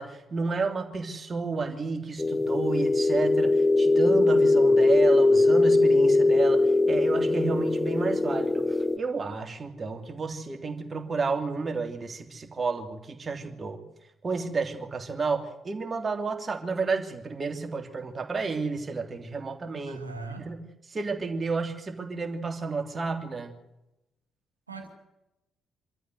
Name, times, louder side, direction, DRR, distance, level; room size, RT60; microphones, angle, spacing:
voice 1, 0.0-13.8 14.2-20.0 20.4-20.6 20.9-23.6, right 4 dB, 35° right, 4 dB, 3.2 m, -31 dB
sound 1, 2.2-9.0, left 2 dB, 20° left, 0.9 m, -21 dB
voice 2, 19.9-20.5 24.7-24.9, right 3 dB, 90° right, 4 dB, 2.3 m, -39 dB
26.0 x 13.5 x 8.1 m, 0.94 s
figure-of-eight pair, 40°, 0 cm